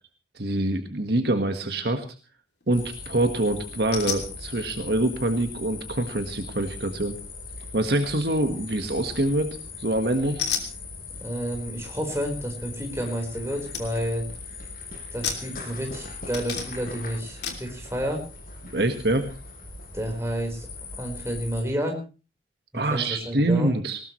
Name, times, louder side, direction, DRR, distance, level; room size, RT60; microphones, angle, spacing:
voice 1, 0.4-2.0 2.7-7.2 7.7-10.5 18.7-19.3 22.7-24.0, right 1 dB, 60° right, 6 dB, 1.6 m, -25 dB
sound 1, 2.6-3.0 3.9-4.3 9.0-9.4 10.4-10.7 13.2-13.3 13.7-13.9 14.2-14.6 15.2-16.0 16.3-16.9 17.4-17.7, left 7 dB, 70° left, 3.0 m, -32 dB
sound 2, 2.7-21.6, left 3 dB, 50° left, 6.2 m, -40 dB
voice 2, 11.2-14.2 15.1-18.2 19.9-20.7 20.9-22.0 22.7-23.7, equal, 15° right, 1 dB, 4.6 m, -30 dB
19.5 x 19.5 x 3.2 m, 0.34 s
head